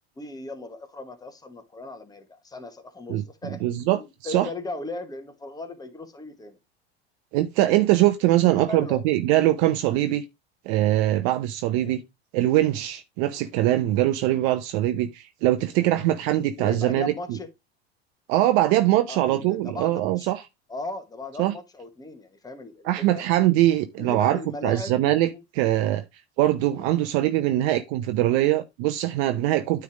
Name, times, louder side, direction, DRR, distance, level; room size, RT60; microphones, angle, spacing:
voice 1, 0.2-6.6 8.4-9.0 11.8-12.0 16.6-17.5 18.6-18.7 19.1-20.3 20.7-23.2 24.0-24.9 25.3-25.4 26.7-26.9, left 2 dB, 10° left, 1.4 m, -37 dB
voice 2, 3.6-4.5 7.3-10.2 10.7-12.0 12.3-17.4 18.3-20.4 21.4-21.5 22.8-26.0 26.4-29.8, right 14 dB, 55° right, 0.8 m, -22 dB
9.3 x 3.4 x 4.9 m
hypercardioid pair, 85°, 32 cm